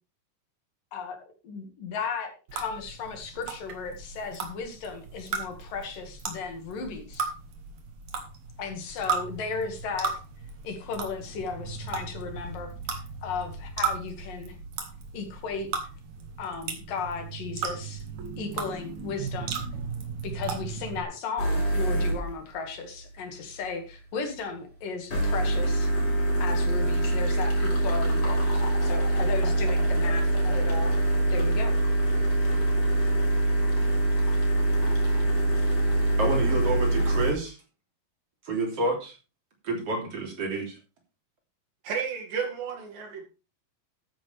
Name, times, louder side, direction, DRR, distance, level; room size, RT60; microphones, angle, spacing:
voice 1, 1.4-7.3 8.6-10.1 10.6-14.6 15.1-15.7 16.4-18.0 18.4-19.6 20.2-25.9 26.4-30.9 31.3-31.8, left 5 dB, 75° left, 4 dB, 3.7 m, -35 dB
sound 1, 2.5-21.0, right 5 dB, 60° right, 3.1 m, -36 dB
sound 2, 21.4-22.3 25.1-37.3, right 1 dB, 40° left, 4.9 m, -24 dB
voice 2, 36.2-37.6 38.5-39.1 39.6-40.7, right 2 dB, 45° right, 1 dB, 4.1 m, -29 dB
voice 3, 41.8-43.2, right 6 dB, 85° right, 3 dB, 4.1 m, -32 dB
12.5 x 9.6 x 3.4 m, 0.31 s
omnidirectional pair, 3.9 m